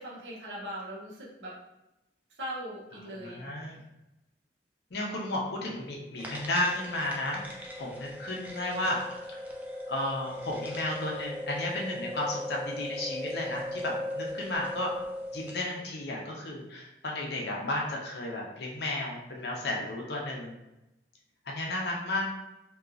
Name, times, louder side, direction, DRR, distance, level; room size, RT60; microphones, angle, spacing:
voice 1, 0.0-1.5 2.4-3.4 3.7-3.8, equal, 85° right, -4 dB, 0.7 m, -40 dB
voice 2, 3.2-3.8 4.9-7.4 7.8-9.0 9.9-14.9 15.3-20.6 21.5-22.2, left 1 dB, 65° left, -2 dB, 0.6 m, -33 dB
sound 1, 6.2-15.7, left 1 dB, 10° right, 0.3 m, -38 dB
2.9 x 2.3 x 2.4 m, 0.94 s
head